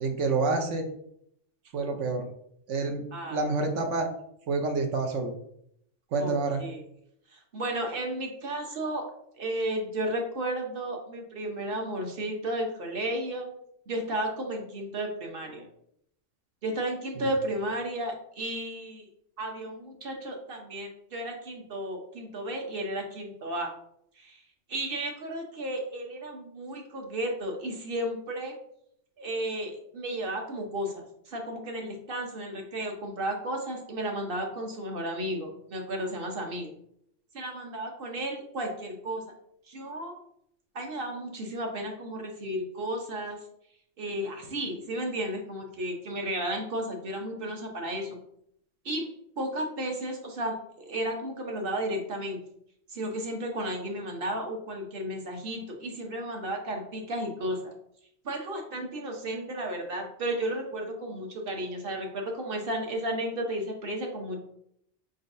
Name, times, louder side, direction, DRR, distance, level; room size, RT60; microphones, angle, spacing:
voice 1, 0.0-0.8 1.7-2.2 2.7-3.0 3.3-4.1 4.5-5.3 6.1-6.6, right 3 dB, 85° right, 5 dB, 1.1 m, -27 dB
voice 2, 3.1-3.4 6.2-6.3 6.6-6.8 7.3-9.1 9.4-13.5 13.9-15.7 16.6-19.1 19.4-23.7 24.2-24.4 24.7-28.6 29.2-36.7 37.3-39.2 39.7-40.2 40.7-43.4 44.0-48.2 48.8-52.4 52.9-57.6 58.2-64.4, right 1 dB, 55° right, 2 dB, 1.0 m, -33 dB
5.0 x 3.9 x 2.6 m, 0.72 s
omnidirectional pair, 1.2 m